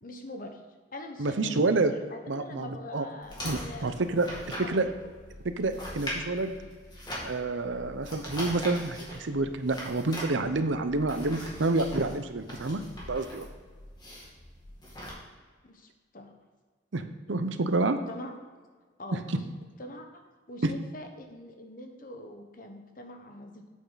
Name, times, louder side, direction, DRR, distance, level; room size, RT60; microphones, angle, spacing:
voice 1, 0.0-4.0 4.5-4.9 15.6-16.3 17.8-18.3 19.0-19.4 19.8-20.2 20.5-23.7, left 1 dB, 45° left, 4 dB, 1.2 m, -44 dB
voice 2, 1.2-1.9 2.3-3.1 3.4-4.3 4.6-4.9 5.4-6.6 7.2-12.8 13.1-13.5 16.9-18.0 19.1-19.2 20.6-20.7, right 2 dB, 80° right, 9 dB, 0.7 m, -28 dB
sound 1, 3.2-15.1, equal, 25° left, 2.4 m, -41 dB
8.6 x 8.4 x 4.1 m, 1.5 s
head